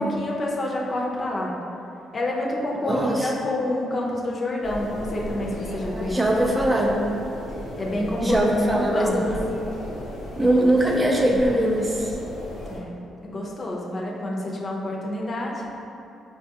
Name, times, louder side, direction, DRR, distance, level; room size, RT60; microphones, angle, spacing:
voice 1, 0.0-1.5 2.1-6.5 7.8-8.5 8.7-9.4 12.6-12.9 13.2-15.6, left 1 dB, 40° left, -3 dB, 0.6 m, -28 dB
voice 2, 2.8-3.3 5.8-7.1 8.2-9.5 10.4-12.2, right 1 dB, 15° right, -1 dB, 0.4 m, -22 dB
sound 1, 4.6-12.8, left 1 dB, 90° left, 0.7 m, -35 dB
4.4 x 2.3 x 2.8 m, 2.7 s
cardioid pair, 90°, 0 cm